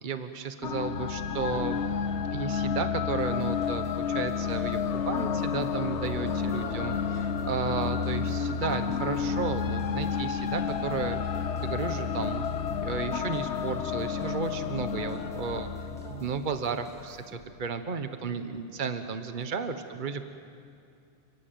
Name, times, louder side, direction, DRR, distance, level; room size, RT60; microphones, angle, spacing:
voice 1, 0.0-1.8 2.3-4.8 5.1-11.2 11.6-12.4 12.8-15.7 16.1-20.2, right 5 dB, 45° right, 8 dB, 1.2 m, -33 dB
sound 1, 0.6-16.8, left 6 dB, 85° left, 1.2 m, -31 dB
sound 2, 3.2-17.7, equal, 5° left, 2.0 m, -54 dB
voice 2, 6.0-6.9 10.8-11.1 14.7-16.3 19.4-19.6, right 3 dB, 85° right, 4 dB, 2.2 m, -46 dB
29.5 x 17.0 x 9.3 m, 2.6 s
omnidirectional pair, 1.1 m